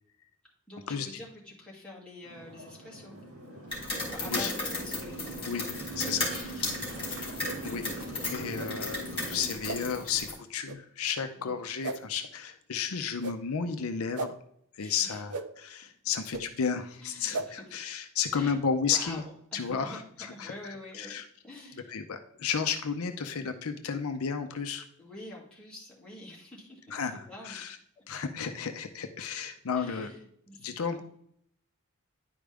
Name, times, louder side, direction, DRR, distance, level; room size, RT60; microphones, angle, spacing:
voice 1, 0.7-3.2 4.1-5.5 6.6-7.1 11.4-11.5 14.8-15.2 17.0-17.6 18.3-21.1 21.4-22.0 25.0-27.6 28.0-28.1 29.7-31.0, left 1 dB, 5° left, -6 dB, 2.2 m, -47 dB
Motorcycle, 2.2-9.5, right 1 dB, 70° right, 3.1 m, -42 dB
sound 1, 3.7-10.3, left 2 dB, 25° left, 3.3 m, -35 dB
voice 2, 6.0-6.7 7.6-7.8 8.3-14.3 14.8-19.2 19.5-21.2 21.9-24.8 26.9-27.8 28.1-30.1 30.6-31.0, left 6 dB, 70° left, 7 dB, 0.6 m, -33 dB
sound 2, 7.4-7.6 8.5-8.7 9.6-9.8 10.6-10.8 11.8-12.0 13.2-13.4 14.1-14.3 15.3-15.5 16.3-16.4 17.3-17.5, right 3 dB, 90° right, 0.7 m, -35 dB
10.5 x 5.0 x 3.4 m, 0.69 s
head